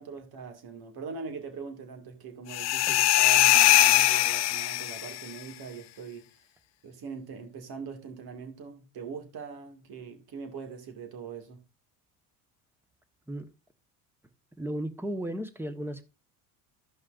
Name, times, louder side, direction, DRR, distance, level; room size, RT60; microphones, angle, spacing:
voice 1, 0.0-6.3 6.8-11.6, right 5 dB, 55° right, 2.3 m, -42 dB
sound 1, 2.5-5.2, left 15 dB, 40° left, 0.4 m, -21 dB
voice 2, 14.6-16.0, right 1 dB, 5° right, 1.4 m, -34 dB
15.0 x 5.4 x 2.6 m
supercardioid pair, 80°, 45 cm